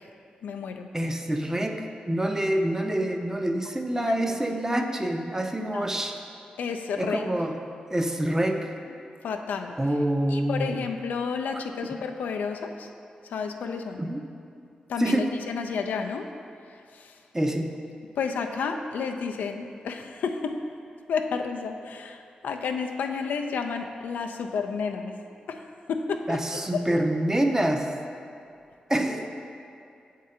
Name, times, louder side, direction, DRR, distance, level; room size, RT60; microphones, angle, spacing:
voice 1, 0.4-0.9 4.0-4.4 5.6-5.9 6.6-7.3 9.2-9.7 10.3-12.9 13.3-14.0 14.9-16.3 17.0-17.1 18.2-20.6 21.1-25.1 25.5-25.6 25.9-26.4 26.7-26.8, left 5 dB, 85° left, 4 dB, 0.3 m, -31 dB
voice 2, 0.9-6.1 7.0-7.6 7.9-8.7 9.8-10.9 11.5-12.0 14.0-14.3 15.0-15.3 17.3-17.7 26.3-27.9 28.9-29.3, right 1 dB, 15° right, 4 dB, 0.6 m, -26 dB
6.6 x 3.7 x 4.3 m, 2.4 s
cardioid pair, 50°, 3 cm